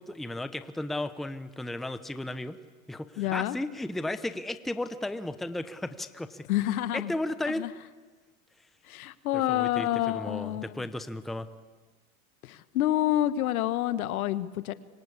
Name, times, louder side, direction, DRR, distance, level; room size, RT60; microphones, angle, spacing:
voice 1, 0.0-2.6 2.9-6.5 6.9-7.7 9.5-11.5, left 1 dB, ahead, 11 dB, 0.8 m, -34 dB
voice 2, 3.2-3.6 6.5-7.1 7.6-7.7 8.8-10.9 12.4-14.7, left 13 dB, 75° left, 13 dB, 1.6 m, -28 dB
27.0 x 25.0 x 8.5 m, 1.4 s
supercardioid pair, 130°, 44 cm